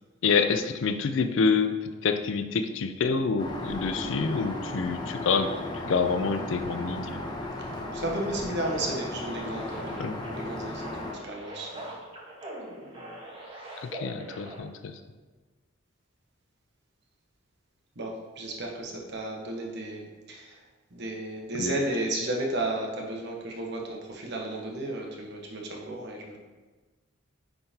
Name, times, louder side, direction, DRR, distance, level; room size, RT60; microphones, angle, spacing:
voice 1, 0.2-7.2 10.0-10.2 13.8-15.0 21.6-21.7, left 5 dB, 60° left, 9 dB, 0.4 m, -27 dB
Aircraft, 3.4-11.1, left 1 dB, 20° left, 0.7 m, -36 dB
voice 2, 7.6-11.9 18.0-20.6 20.9-26.4, right 1 dB, 55° right, 0 dB, 1.1 m, -34 dB
sound 1, 8.1-14.6, right 1 dB, 25° right, 1.2 m, -42 dB
9.7 x 3.8 x 2.8 m, 1.3 s
head